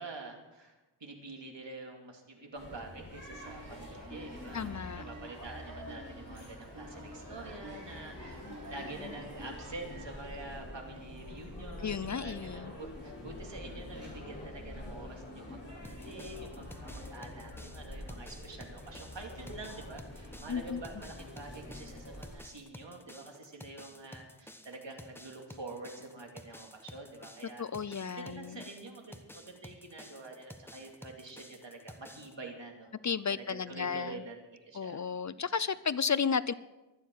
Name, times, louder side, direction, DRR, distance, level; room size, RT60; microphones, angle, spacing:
voice 1, 0.0-15.6 16.0-32.9 33.3-35.4, right 2 dB, 75° right, 2 dB, 2.6 m, -47 dB
sound 1, 2.6-22.3, left 1 dB, 25° left, 6.3 m, -46 dB
sound 2, 3.3-10.1, right 1 dB, 50° right, 3.9 m, -49 dB
voice 2, 4.5-5.1 11.8-12.7 20.5-20.8 27.6-28.6 33.0-34.2 34.7-36.5, left 6 dB, 40° left, 17 dB, 0.4 m, -33 dB
sound 3, 15.8-32.3, left 1 dB, 5° left, 1.0 m, -52 dB
23.5 x 9.3 x 4.7 m, 1.1 s
wide cardioid pair, 75°, 44 cm